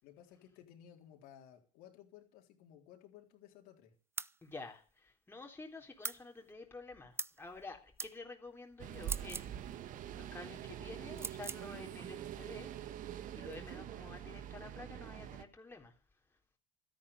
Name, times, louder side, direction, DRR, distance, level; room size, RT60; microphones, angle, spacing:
voice 1, 0.0-3.9, left 10 dB, 70° left, 2 dB, 3.7 m, -57 dB
sound 1, 4.2-4.4 6.0-6.2 7.2-7.4 8.0-8.1 9.0-9.5 11.2-11.6, right 4 dB, 15° right, 0.6 m, -40 dB
voice 2, 4.4-15.9, left 3 dB, 15° left, 2 dB, 3.6 m, -50 dB
sound 2, 8.8-15.4, right 11 dB, 55° right, 1.4 m, -45 dB
13.0 x 10.5 x 7.0 m, 0.39 s
supercardioid pair, 90°, 16 cm